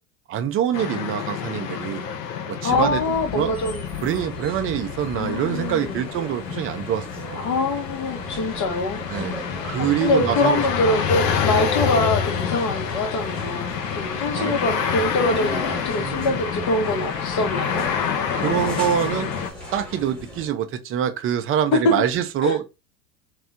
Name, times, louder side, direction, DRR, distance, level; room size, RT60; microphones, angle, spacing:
voice 1, 0.3-2.1 2.5-3.0 3.3-3.5 4.0-7.5 9.1-10.6 14.3-14.5 16.0-16.4 18.3-19.3 19.7-22.7, right 10 dB, 30° right, 0.5 m, -25 dB
sound 1, 0.7-19.5, left 7 dB, 85° left, 0.6 m, -28 dB
voice 2, 2.6-3.9 5.2-6.0 7.4-9.0 9.8-17.9 21.7-22.0 22.4-22.6, left 2 dB, 40° left, 0.9 m, -24 dB
sound 2, 2.7-20.5, left 1 dB, ahead, 1.1 m, -38 dB
3.0 x 2.0 x 3.4 m
hypercardioid pair, 85°, 47 cm